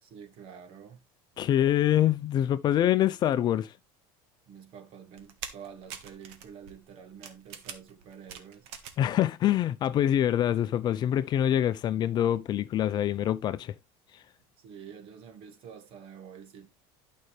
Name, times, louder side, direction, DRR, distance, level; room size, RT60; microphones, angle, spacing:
voice 1, 0.0-1.1 4.5-8.7 14.6-16.7, right 7 dB, 50° right, 1.7 m, -48 dB
voice 2, 1.4-3.7 9.0-13.7, left 11 dB, 35° left, 0.5 m, -25 dB
sound 1, 5.2-9.1 9.4-10.2 10.5-10.6, right 8 dB, 70° right, 1.6 m, -44 dB
11.5 x 5.5 x 3.3 m
cardioid pair, 145°, 12 cm